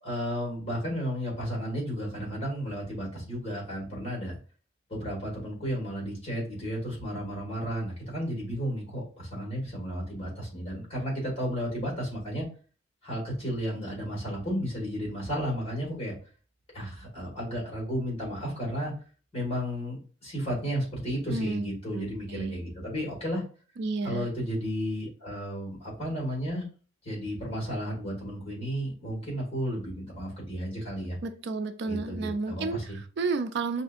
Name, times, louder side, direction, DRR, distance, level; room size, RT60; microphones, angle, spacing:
voice 1, 0.0-4.3 4.9-12.4 13.0-16.1 16.7-18.9 19.3-23.4 24.0-26.6 27.0-31.2 31.9-33.0, equal, 30° left, -3 dB, 2.0 m, -33 dB
voice 2, 21.3-22.5 23.8-24.3 31.2-33.8, right 3 dB, 60° right, 9 dB, 0.4 m, -32 dB
5.5 x 2.6 x 2.5 m, 0.38 s
head